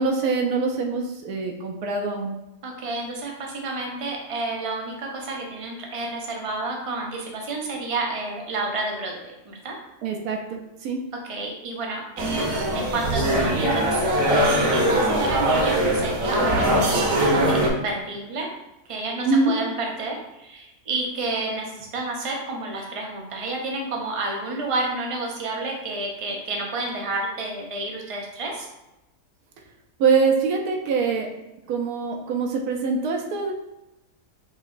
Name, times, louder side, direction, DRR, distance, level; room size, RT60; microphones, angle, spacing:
voice 1, 0.0-2.3 10.0-11.0 19.2-19.5 30.0-31.3 31.7-33.5, right 4 dB, 85° right, 1 dB, 1.1 m, -24 dB
voice 2, 2.6-9.8 11.2-14.4 14.7-18.5 18.9-28.7, right 2 dB, 45° right, 0 dB, 0.4 m, -30 dB
sound 1, 12.2-17.7, right 1 dB, 65° right, 1.2 m, -21 dB
5.3 x 2.9 x 2.5 m, 0.94 s
omnidirectional pair, 1.6 m